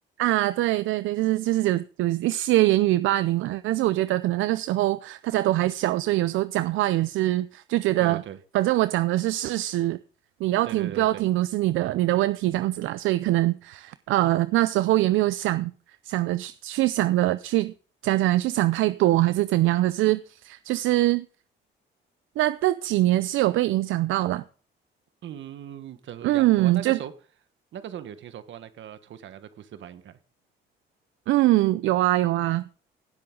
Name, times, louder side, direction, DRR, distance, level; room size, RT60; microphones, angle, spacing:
voice 1, 0.2-8.2 8.5-10.0 10.4-15.7 16.0-17.7 18.0-21.2 22.4-24.4 26.2-27.0 31.3-32.6, right 16 dB, 85° right, 0.5 m, -23 dB
voice 2, 8.0-8.4 10.6-11.2 25.2-27.1 27.7-30.2, right 9 dB, 70° right, 1.4 m, -39 dB
17.0 x 7.8 x 3.8 m
cardioid pair, 90°, 20 cm